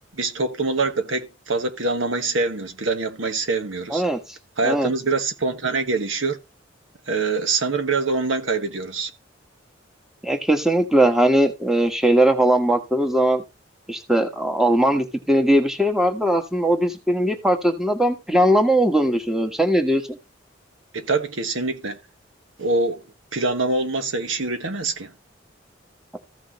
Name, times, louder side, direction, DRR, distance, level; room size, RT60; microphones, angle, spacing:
voice 1, 0.1-4.0 4.6-6.4 7.1-9.1 20.9-22.0 22.6-23.0 23.3-25.1, right 3 dB, 85° right, 1.5 m, -24 dB
voice 2, 10.2-13.4 13.9-20.2, right 1 dB, ahead, 1.3 m, -19 dB
14.5 x 6.3 x 3.0 m
head